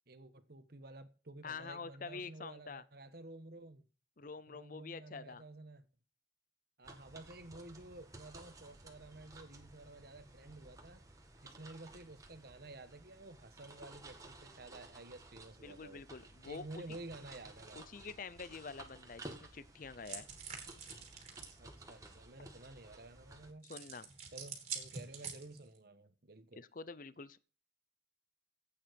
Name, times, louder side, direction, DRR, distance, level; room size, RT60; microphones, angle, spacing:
voice 1, 0.1-3.9 4.5-5.9 6.8-11.1 11.4-16.0 16.5-17.8 21.6-23.7 24.3-26.6, right 2 dB, 55° right, 1.3 m, -52 dB
voice 2, 1.4-2.8 4.2-5.4 15.6-16.8 17.7-20.3 23.7-24.1 26.6-27.4, left 4 dB, 45° left, 0.6 m, -47 dB
sound 1, 6.8-23.5, right 2 dB, 20° right, 1.8 m, -55 dB
sound 2, 20.0-21.6 23.6-25.8, right 6 dB, 35° right, 3.0 m, -46 dB
14.0 x 8.8 x 5.2 m
head